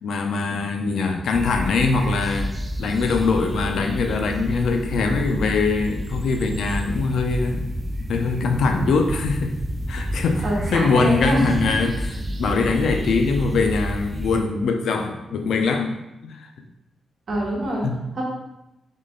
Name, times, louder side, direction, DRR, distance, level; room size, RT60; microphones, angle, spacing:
voice 1, 0.0-2.5 2.8-7.7 8.1-9.5 9.9-15.9 16.2-16.5 17.8-18.0, left 4 dB, 75° left, 5 dB, 0.5 m, -22 dB
sound 1, 1.3-14.4, equal, 15° right, 0.3 m, -30 dB
voice 2, 10.4-11.5 17.3-17.8 18.1-18.2, right 1 dB, 45° right, -4 dB, 1.2 m, -24 dB
3.7 x 3.2 x 3.7 m, 0.91 s
wide cardioid pair, 150°, 0 cm